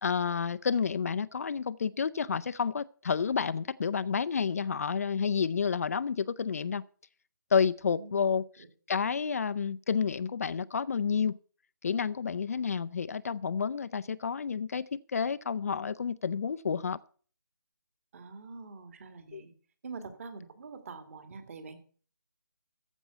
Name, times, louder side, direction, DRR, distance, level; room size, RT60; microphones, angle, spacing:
voice 1, 0.0-6.8 7.5-8.5 8.9-11.4 11.8-17.0 19.3-19.4, left 6 dB, 45° left, 0.4 m, -30 dB
voice 2, 7.9-8.3 8.6-8.7 18.1-19.5 19.8-21.8, right 4 dB, 40° right, 2.1 m, -45 dB
14.5 x 5.4 x 8.1 m
figure-of-eight pair, 155°, 11 cm